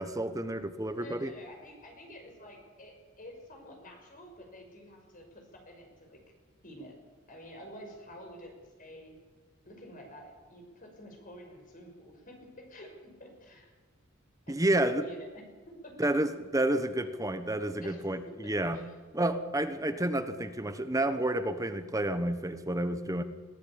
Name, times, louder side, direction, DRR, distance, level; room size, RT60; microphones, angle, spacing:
voice 1, 0.0-1.3 14.5-15.0 16.0-18.8 19.1-23.2, right 1 dB, 15° right, 9 dB, 1.1 m, -30 dB
voice 2, 1.0-6.2 6.6-7.0 7.3-9.1 9.6-13.7 14.5-16.0 16.8-16.9 17.8-18.0 18.3-18.9 19.5-19.8, equal, 40° left, 2 dB, 6.0 m, -49 dB
22.0 x 15.5 x 8.8 m, 1.5 s
head